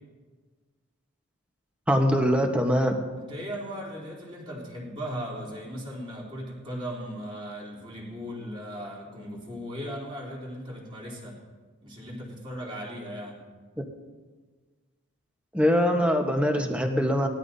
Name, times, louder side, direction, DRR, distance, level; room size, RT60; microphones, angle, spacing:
voice 1, 1.9-2.9 15.5-17.3, equal, 5° right, 3 dB, 1.1 m, -23 dB
voice 2, 3.2-11.4 11.8-13.4, equal, 25° right, -5 dB, 3.3 m, -37 dB
19.5 x 13.0 x 2.7 m, 1.4 s
head